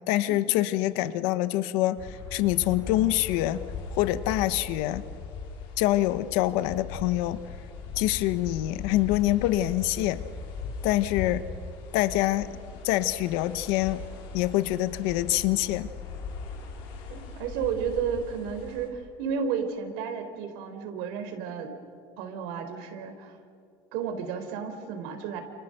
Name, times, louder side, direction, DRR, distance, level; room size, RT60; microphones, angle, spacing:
voice 1, 0.1-3.6 3.9-5.0 5.8-7.4 8.0-10.2 10.8-11.4 11.9-12.5 12.8-14.0 14.3-15.9, left 15 dB, 75° left, 13 dB, 1.0 m, -25 dB
sound 1, 2.0-18.9, left 4 dB, 60° left, 4.5 m, -39 dB
voice 2, 17.1-21.7 22.2-23.4 23.9-25.4, right 7 dB, 75° right, 6 dB, 3.7 m, -32 dB
29.0 x 29.0 x 6.6 m, 2.3 s
cardioid pair, 180°, 10 cm